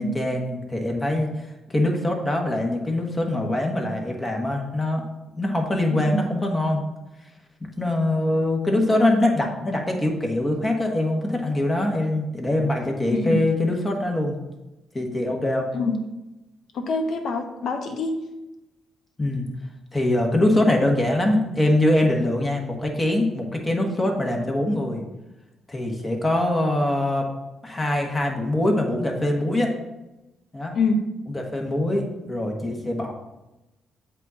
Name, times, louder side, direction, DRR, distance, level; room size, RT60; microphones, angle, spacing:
voice 1, 0.0-5.0 5.4-6.8 7.6-14.4 14.9-15.7 19.2-19.5 19.9-25.0 25.7-27.3 27.6-29.7 30.5-30.7 31.3-33.1, left 1 dB, 25° left, 1 dB, 1.6 m, -23 dB
voice 2, 16.7-18.2 30.7-31.0, left 3 dB, 65° left, 4 dB, 0.9 m, -25 dB
8.0 x 2.8 x 5.7 m, 1.0 s
hypercardioid pair, 45°, 0 cm